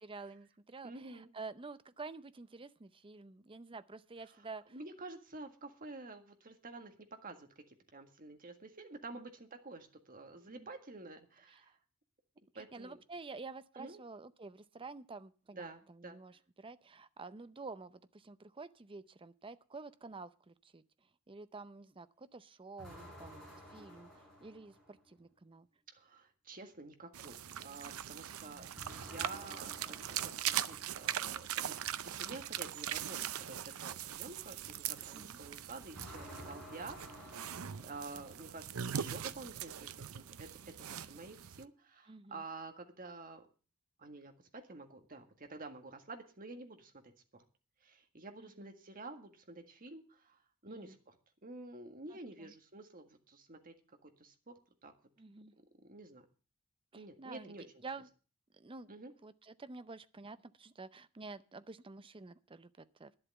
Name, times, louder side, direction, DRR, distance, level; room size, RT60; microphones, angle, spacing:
voice 1, 0.0-4.8 9.1-9.3 10.5-10.7 11.5-11.7 12.5-20.8 21.3-25.7 28.4-28.7 35.1-35.4 42.1-42.4 48.4-48.7 50.7-51.0 52.1-52.5 55.2-55.5 56.9-57.6 57.8-58.1 58.5-58.9 59.2-63.2, right 3 dB, 25° right, 14 dB, 0.6 m, -50 dB
voice 2, 0.8-1.3 4.4-4.5 4.7-6.9 7.2-7.6 7.9-11.7 12.5-13.0 13.8-14.0 15.5-16.2 25.9-37.5 37.8-43.5 44.0-47.4 47.8-51.2 51.4-53.8 54.0-54.5 54.8-54.9 55.8-56.3 56.9-57.6 58.9-59.1, right 3 dB, 40° right, 6 dB, 1.8 m, -50 dB
sound 1, 22.8-25.1 28.8-31.3 35.9-38.6, equal, ahead, 7.0 m, -53 dB
sound 2, 27.1-41.6, right 10 dB, 75° right, 0.6 m, -41 dB
11.0 x 7.8 x 7.8 m, 0.37 s
head